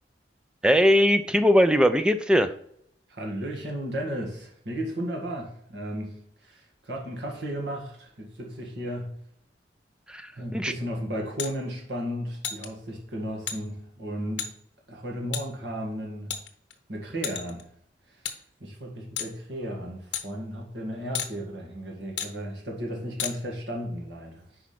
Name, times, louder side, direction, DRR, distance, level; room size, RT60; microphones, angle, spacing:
voice 1, 0.6-2.5 10.1-10.7, equal, 5° right, 10 dB, 0.4 m, -20 dB
voice 2, 3.1-9.1 10.4-14.5 14.9-16.3 16.9-17.7 18.1-18.2 18.6-24.6, equal, 75° right, 0 dB, 1.8 m, -34 dB
sound 1, 11.4-11.5 12.4-12.7 13.5-13.6 14.4-14.5 15.3-15.4 16.3-16.7 17.2-17.6 18.2-18.4 19.2-19.3 20.1-20.2 21.1-21.3 22.2-22.3 23.2-23.3, left 8 dB, 80° left, 0.9 m, -31 dB
5.1 x 4.8 x 5.9 m, 0.68 s
head